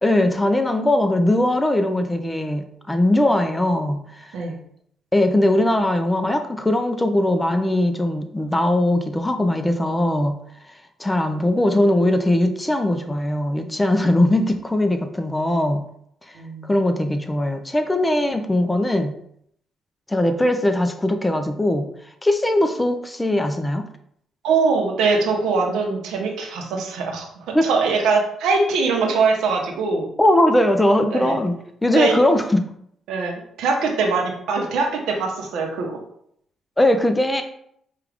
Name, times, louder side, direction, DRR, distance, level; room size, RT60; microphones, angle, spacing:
voice 1, 0.0-4.3 5.1-10.4 11.0-15.8 16.6-19.1 20.1-21.9 22.2-23.9 27.5-27.7 30.2-31.5 31.8-32.6 36.8-37.4, left 1 dB, 10° left, 7 dB, 0.5 m, -20 dB
voice 2, 16.3-16.7 24.4-30.1 31.1-31.3 31.9-32.2 33.1-36.0, right 4 dB, 85° right, 2 dB, 0.8 m, -22 dB
4.9 x 2.4 x 3.4 m, 0.70 s
cardioid pair, 90°, 0 cm